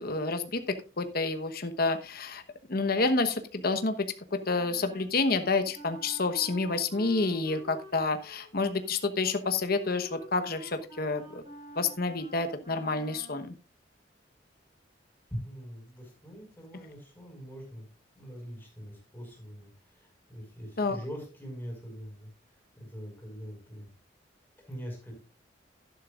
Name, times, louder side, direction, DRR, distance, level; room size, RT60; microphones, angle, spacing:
voice 1, 0.0-2.4 2.7-11.4 11.7-13.5 20.8-21.0, left 3 dB, 55° left, 8 dB, 1.1 m, -29 dB
Wind instrument woodwind instrument, 4.5-13.5, right 1 dB, 25° right, 5.0 m, -49 dB
voice 2, 15.3-17.9 18.1-22.3 22.8-23.9 24.6-25.1, equal, 10° left, -1 dB, 5.5 m, -43 dB
12.5 x 11.0 x 2.5 m, 0.32 s
head